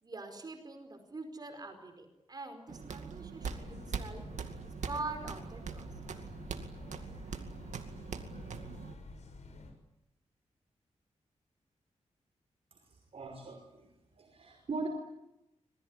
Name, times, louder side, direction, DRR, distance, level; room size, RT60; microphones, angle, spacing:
voice 1, 0.0-4.2 4.9-5.9, right 3 dB, 35° right, 7 dB, 4.9 m, -44 dB
sound 1, 2.7-8.9, right 6 dB, 85° right, 2.3 m, -42 dB
sound 2, 3.4-9.7, left 3 dB, 75° left, 6.7 m, -50 dB
voice 2, 12.9-13.9 14.2-14.9, right 3 dB, 55° right, 2 dB, 5.2 m, -40 dB
26.0 x 21.0 x 9.9 m, 0.87 s
wide cardioid pair, 150°, 12 cm